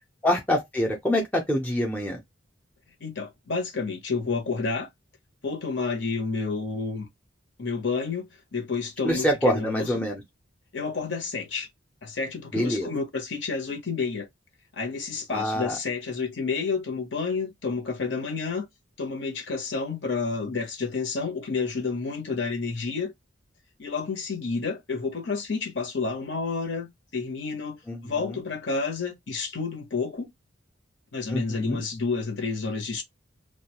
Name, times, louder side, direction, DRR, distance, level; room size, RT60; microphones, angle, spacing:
voice 1, 0.2-2.2 9.0-10.2 12.5-12.9 15.3-15.8 27.9-28.3 31.3-31.8, equal, 5° left, 0.6 m, -26 dB
voice 2, 3.0-4.9 5.4-7.1 7.6-8.3 8.5-10.0 10.7-11.7 12.0-14.3 14.7-18.7 19.0-23.1 23.8-26.9 27.1-30.3 31.1-33.0, left 4 dB, 60° left, 0.9 m, -30 dB
2.4 x 2.3 x 2.9 m
head